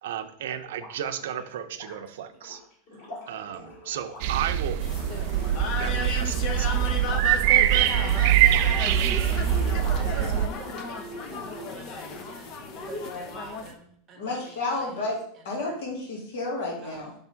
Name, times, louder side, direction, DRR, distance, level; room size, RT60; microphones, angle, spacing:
voice 1, 0.0-2.6 3.3-4.8 5.6-7.2, right 9 dB, 85° right, 8 dB, 0.6 m, -34 dB
sound 1, 0.7-12.3 12.6-13.4, left 2 dB, 45° left, 2.5 m, -46 dB
sound 2, 4.2-10.5, right 11 dB, 45° right, 0.3 m, -23 dB
sound 3, 4.8-13.7, left 4 dB, 30° left, 0.6 m, -34 dB
voice 2, 9.4-15.1 15.3-15.7 16.8-17.1, right 6 dB, 20° right, 2 dB, 0.9 m, -47 dB
voice 3, 14.2-15.2 15.4-17.1, left 2 dB, 65° left, -2 dB, 2.0 m, -31 dB
5.3 x 3.5 x 5.6 m, 0.63 s
supercardioid pair, 180°, 0 cm